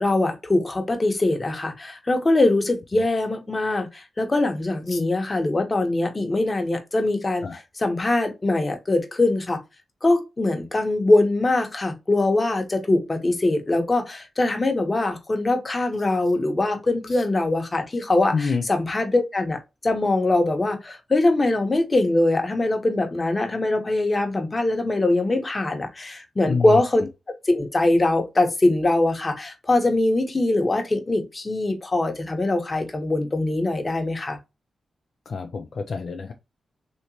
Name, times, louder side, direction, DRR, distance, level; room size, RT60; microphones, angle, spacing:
voice 1, 0.0-7.5 7.8-9.6 10.0-19.6 19.8-27.1 27.5-34.4, left 2 dB, 30° left, 1.0 m, -22 dB
voice 2, 18.3-18.6 26.5-26.8 35.3-36.3, left 5 dB, 65° left, 0.5 m, -27 dB
3.1 x 2.9 x 2.7 m
cardioid pair, 65°, 0 cm